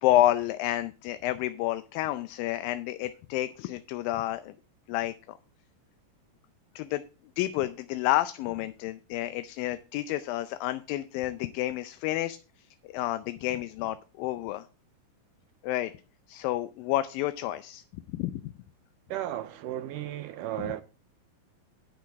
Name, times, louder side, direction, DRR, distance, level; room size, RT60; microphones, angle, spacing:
voice 1, 0.0-4.5 4.9-5.4 6.8-7.0 7.4-12.4 12.8-14.6 15.6-15.9 16.3-17.8 18.1-18.5, left 14 dB, 80° left, 2.3 m, -29 dB
voice 2, 19.1-20.8, right 13 dB, 80° right, 2.1 m, -34 dB
10.5 x 9.6 x 3.5 m
omnidirectional pair, 4.2 m